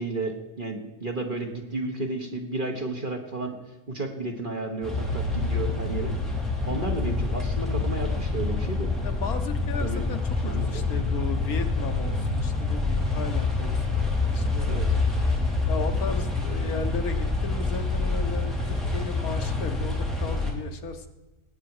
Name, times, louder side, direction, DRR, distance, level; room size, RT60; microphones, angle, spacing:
voice 1, 0.0-3.6 3.9-6.2 6.6-8.9 9.8-10.0 10.4-10.8 14.7-15.0, right 2 dB, 30° right, 3 dB, 1.4 m, -32 dB
sound 1, 4.8-20.5, left 3 dB, ahead, 2.7 m, -27 dB
voice 2, 9.0-14.8 15.7-21.1, left 4 dB, 65° left, 7 dB, 1.5 m, -35 dB
19.5 x 8.2 x 4.8 m, 1.1 s
omnidirectional pair, 1.7 m